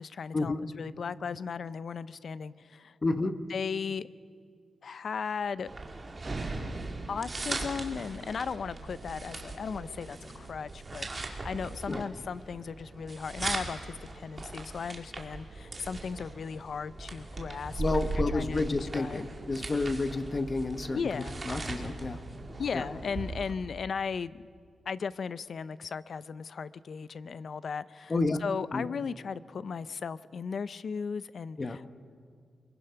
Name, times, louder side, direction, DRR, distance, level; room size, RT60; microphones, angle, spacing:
voice 1, 0.0-3.0 3.5-4.1 4.8-5.7 7.1-19.2 20.9-21.4 22.6-24.4 24.9-28.1 28.4-31.9, left 6 dB, 55° left, 16 dB, 0.5 m, -36 dB
voice 2, 3.0-3.4 11.9-12.0 17.8-22.2 22.7-22.8 28.1-28.4 28.7-28.9 31.6-31.8, left 3 dB, 30° left, 10 dB, 1.0 m, -30 dB
sound 1, 5.7-23.5, right 2 dB, 25° right, 2.4 m, -39 dB
24.0 x 22.0 x 5.8 m, 2.1 s
wide cardioid pair, 130°, 0 cm